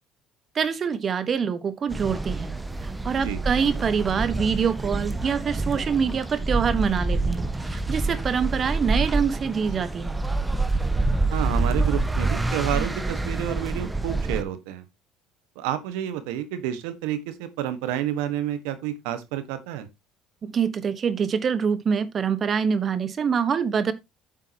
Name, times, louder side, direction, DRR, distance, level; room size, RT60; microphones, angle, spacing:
voice 1, 0.5-2.5 3.0-10.2 20.4-23.9, right 6 dB, 45° right, 1.3 m, -25 dB
sound 1, 1.9-14.4, right 2 dB, 15° right, 1.3 m, -27 dB
voice 2, 11.3-14.8 15.5-19.9, right 11 dB, 85° right, 1.5 m, -29 dB
9.5 x 7.6 x 2.9 m
supercardioid pair, 75°, 0 cm